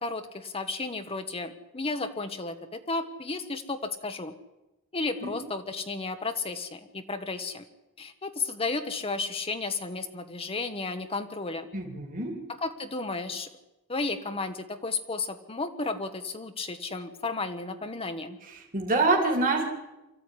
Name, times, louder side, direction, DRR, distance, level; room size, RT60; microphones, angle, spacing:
voice 1, 0.0-4.3 4.9-7.6 8.0-11.7 12.6-13.5 13.9-18.4, left 3 dB, 25° left, 7 dB, 1.2 m, -33 dB
voice 2, 11.7-12.4 18.4-19.7, right 3 dB, 40° right, 2 dB, 2.8 m, -26 dB
24.5 x 14.5 x 9.9 m, 1.0 s
head